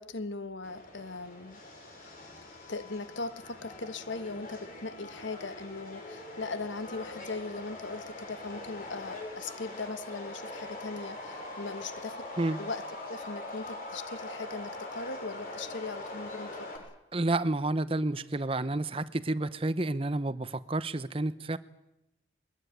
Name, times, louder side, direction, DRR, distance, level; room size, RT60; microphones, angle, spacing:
voice 1, 0.0-1.6 2.7-12.3 12.6-16.7, left 3 dB, 90° left, 12 dB, 1.4 m, -39 dB
Subway metro underground, 0.6-16.8, left 2 dB, 50° left, 7.0 m, -43 dB
voice 2, 17.1-21.6, right 2 dB, 30° right, 14 dB, 0.8 m, -30 dB
22.0 x 20.5 x 9.2 m, 0.89 s
head